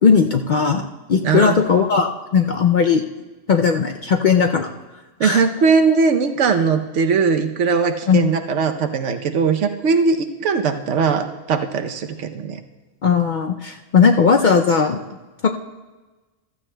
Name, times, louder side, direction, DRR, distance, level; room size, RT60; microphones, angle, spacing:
voice 1, 0.0-3.0 3.5-4.7 5.2-5.4 8.1-8.2 13.0-15.0 15.4-15.5, left 6 dB, 60° left, 4 dB, 0.5 m, -17 dB
voice 2, 1.2-1.6 5.2-12.6, right 5 dB, 80° right, 7 dB, 1.1 m, -19 dB
15.0 x 13.5 x 2.2 m, 1.2 s
omnidirectional pair, 1.2 m